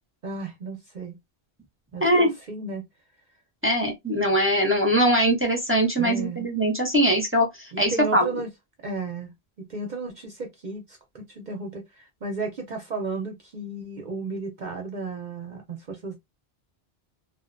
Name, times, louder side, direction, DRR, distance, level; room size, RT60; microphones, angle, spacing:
voice 1, 0.2-1.2 1.9-2.8 6.0-6.5 7.7-8.5 8.8-16.2, right 3 dB, 55° right, 0.7 m, -34 dB
voice 2, 2.0-2.3 3.6-8.3, equal, 15° right, 0.5 m, -22 dB
2.4 x 2.1 x 2.4 m
omnidirectional pair, 1.1 m